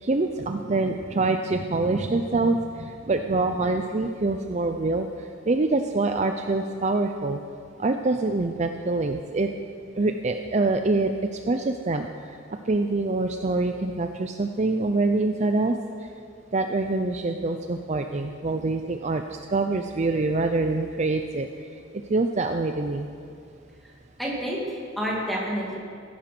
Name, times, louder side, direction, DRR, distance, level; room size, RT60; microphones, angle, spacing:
voice 1, 0.0-5.1 5.5-7.4 7.8-9.5 10.0-12.4 12.7-15.8 16.5-21.5 22.1-23.1, right 3 dB, 35° right, 6 dB, 0.5 m, -25 dB
voice 2, 24.2-25.8, equal, ahead, -4 dB, 2.4 m, -29 dB
15.5 x 10.5 x 6.0 m, 2.4 s
head